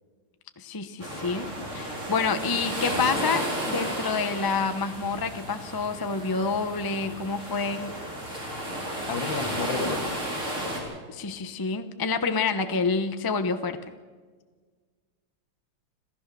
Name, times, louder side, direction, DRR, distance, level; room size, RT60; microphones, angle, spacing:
voice 1, 0.6-7.9 11.1-13.8, left 4 dB, 30° left, 9 dB, 0.4 m, -28 dB
sound 1, 1.0-10.8, right 1 dB, 35° right, 4.9 m, -33 dB
voice 2, 9.1-10.1, left 5 dB, 65° left, 8 dB, 2.2 m, -31 dB
26.5 x 15.0 x 6.9 m, 1.5 s
omnidirectional pair, 2.2 m